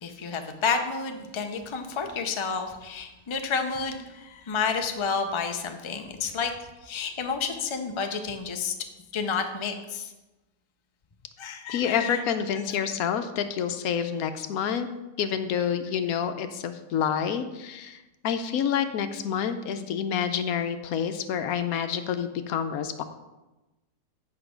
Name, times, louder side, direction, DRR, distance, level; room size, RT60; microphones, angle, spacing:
voice 1, 0.0-6.5 6.8-8.7 9.1-10.1 11.4-12.2, left 5 dB, 35° left, 5 dB, 0.5 m, -30 dB
voice 2, 11.7-14.9 15.2-18.0 18.2-23.0, left 8 dB, 80° left, 9 dB, 1.1 m, -28 dB
8.1 x 5.7 x 5.1 m, 1.1 s
omnidirectional pair, 1.5 m